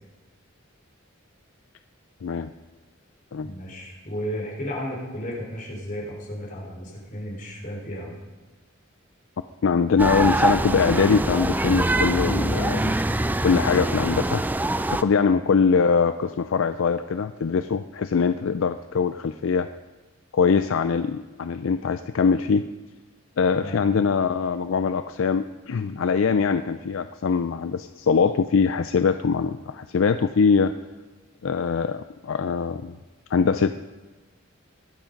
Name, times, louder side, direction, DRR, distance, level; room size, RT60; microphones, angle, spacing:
voice 1, 3.4-8.2 15.1-15.4 23.5-23.8, equal, 40° left, -2 dB, 3.9 m, -34 dB
voice 2, 9.6-12.9 13.4-14.4 14.9-19.7 20.3-22.6 23.4-30.7 31.4-33.0 33.3-33.8, left 5 dB, 70° left, 11 dB, 0.4 m, -22 dB
sound 1, 10.0-15.0, right 1 dB, 10° right, 0.4 m, -24 dB
22.0 x 8.9 x 5.3 m, 1.2 s
head